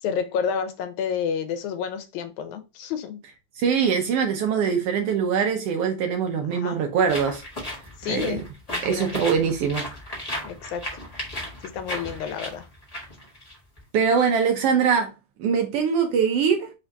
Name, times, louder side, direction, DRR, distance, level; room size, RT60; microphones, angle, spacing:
voice 1, 0.0-3.2 6.5-6.8 8.0-8.4 8.7-9.1 10.4-11.0 11.7-12.7, left 7 dB, 85° left, 2.1 m, -30 dB
voice 2, 3.6-7.4 8.1-8.4 8.8-9.9 13.9-15.1 15.4-16.7, right 6 dB, 80° right, 1.3 m, -22 dB
sound 1, 7.1-14.1, equal, 40° left, 0.5 m, -35 dB
4.8 x 2.6 x 3.4 m
omnidirectional pair, 3.3 m